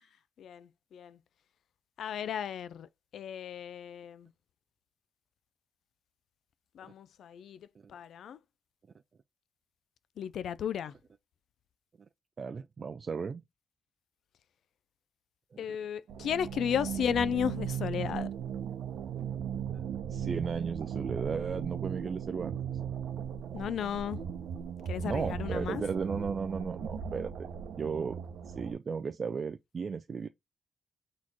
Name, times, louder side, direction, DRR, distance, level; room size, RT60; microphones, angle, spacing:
voice 1, 0.4-1.2 2.0-4.3 6.7-8.4 10.2-10.9 15.6-18.3 23.5-24.2 24.9-25.8, left 8 dB, 70° left, 0.3 m, -34 dB
voice 2, 12.4-13.4 15.5-15.6 20.1-22.6 25.0-27.5 27.8-28.2 28.5-30.3, right 5 dB, 35° right, 0.3 m, -35 dB
sound 1, 16.1-28.7, right 8 dB, 90° right, 0.7 m, -37 dB
4.2 x 3.0 x 4.1 m
wide cardioid pair, 160°, 0 cm